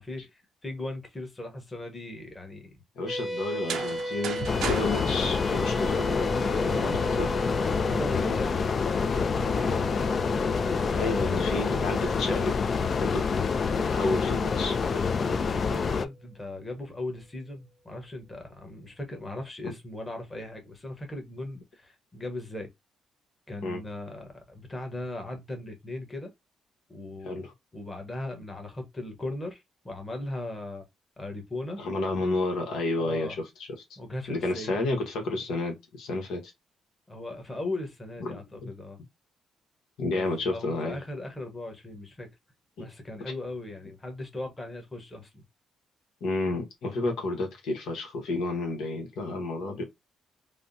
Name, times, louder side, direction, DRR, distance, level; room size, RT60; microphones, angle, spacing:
voice 1, 0.0-2.7 6.6-7.0 7.8-8.6 9.0-9.9 10.7-11.8 15.0-22.7 23.5-26.3 26.9-27.5 27.7-30.8 31.2-31.8 33.0-33.4 34.0-34.8 37.1-39.0 40.1-42.3 42.8-45.4 49.6-49.8, left 2 dB, 20° left, 1.1 m, -38 dB
voice 2, 3.0-4.4 4.7-6.5 6.8-7.4 10.9-12.5 13.0-13.2 13.8-15.0 23.6-23.8 27.2-27.5 31.8-33.5 33.9-34.0 34.3-36.5 38.2-38.7 40.0-41.0 42.8-42.9 46.2-49.8, left 2 dB, 80° left, 1.0 m, -31 dB
sound 1, 3.1-15.7, equal, 5° right, 0.8 m, -37 dB
sound 2, 3.5-6.4, right 7 dB, 75° right, 0.5 m, -37 dB
sound 3, 4.5-16.0, left 5 dB, 45° left, 0.3 m, -27 dB
3.4 x 2.1 x 2.5 m
cardioid pair, 90°, 0 cm